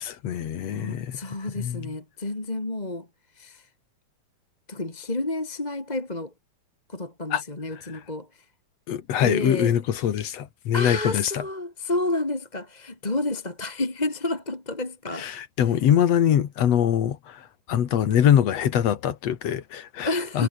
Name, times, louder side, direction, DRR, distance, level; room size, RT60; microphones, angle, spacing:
voice 1, 0.0-1.2 1.6-1.9 7.3-7.4 8.9-11.4 15.2-17.4 17.7-20.1 20.3-20.5, left 9 dB, 60° left, 2.6 m, -23 dB
voice 2, 0.7-3.1 3.4-3.7 4.7-6.3 6.9-8.4 9.2-9.7 10.7-15.3 20.0-20.5, left 2 dB, 15° left, 2.2 m, -30 dB
omnidirectional pair, 3.7 m